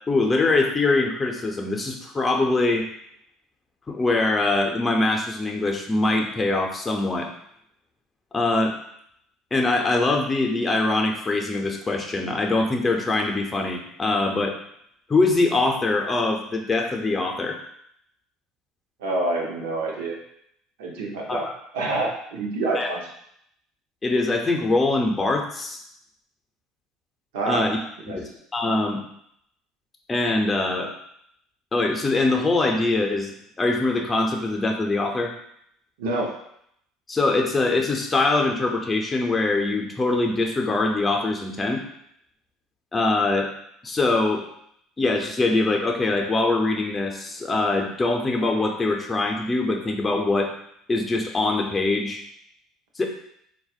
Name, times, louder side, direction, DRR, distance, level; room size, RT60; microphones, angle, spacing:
voice 1, 0.1-2.9 3.9-7.3 8.3-8.7 9.5-14.5 15.1-17.6 21.3-21.5 22.7-22.9 24.0-25.8 27.4-27.8 28.1-29.0 30.1-30.9 31.7-35.3 37.1-41.8 42.9-43.5 43.8-44.4 45.0-50.5 50.9-52.2 53.0-53.1, left 2 dB, 25° left, 2 dB, 0.6 m, -23 dB
voice 2, 19.0-20.2 20.8-21.5 21.7-23.0 27.3-27.7 28.1-28.2 36.0-36.3, right 2 dB, 75° right, -1 dB, 0.7 m, -27 dB
4.0 x 2.3 x 2.4 m, 0.71 s
hypercardioid pair, 70°, 0 cm